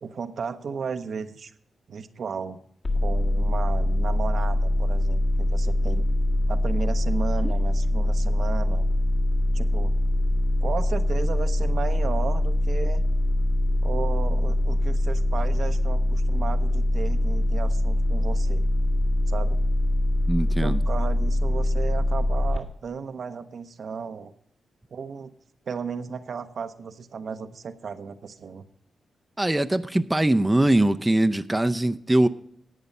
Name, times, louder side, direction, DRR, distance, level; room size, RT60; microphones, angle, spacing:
voice 1, 0.0-1.5 1.9-2.6 2.9-6.1 6.5-8.9 9.5-9.9 10.6-13.0 13.8-18.7 19.3-19.6 20.6-24.3 24.9-25.3 25.7-28.6, right 6 dB, 65° right, 9 dB, 0.7 m, -34 dB
sound 1, 2.8-22.6, left 1 dB, 50° left, 1.8 m, -23 dB
voice 2, 20.3-20.8 29.4-32.3, right 1 dB, 15° right, 9 dB, 0.5 m, -22 dB
11.0 x 8.1 x 5.3 m, 0.67 s
cardioid pair, 65°, 0 cm